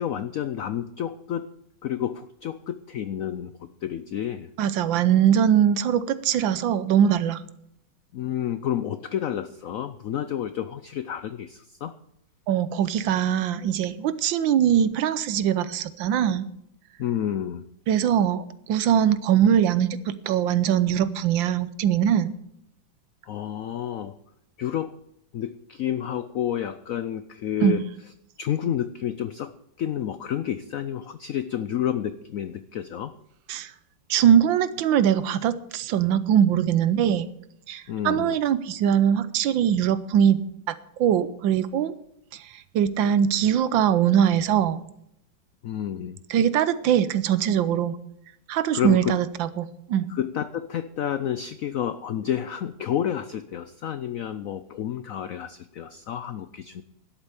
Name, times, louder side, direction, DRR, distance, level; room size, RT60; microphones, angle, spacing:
voice 1, 0.0-1.5 1.8-3.5 3.8-4.5 8.1-11.9 17.0-17.7 23.3-24.1 24.6-24.9 25.3-27.8 28.4-29.5 29.8-33.1 37.9-38.4 45.6-46.2 48.7-49.2 50.1-56.8, left 10 dB, 80° left, 12 dB, 0.7 m, -30 dB
voice 2, 4.6-7.4 12.5-16.5 17.9-20.0 20.3-22.4 27.6-27.8 33.5-33.7 34.1-37.3 37.7-41.9 42.3-44.8 46.3-48.0 48.5-50.1, right 9 dB, 80° right, 14 dB, 1.5 m, -22 dB
11.5 x 8.2 x 6.9 m, 0.76 s
omnidirectional pair, 2.1 m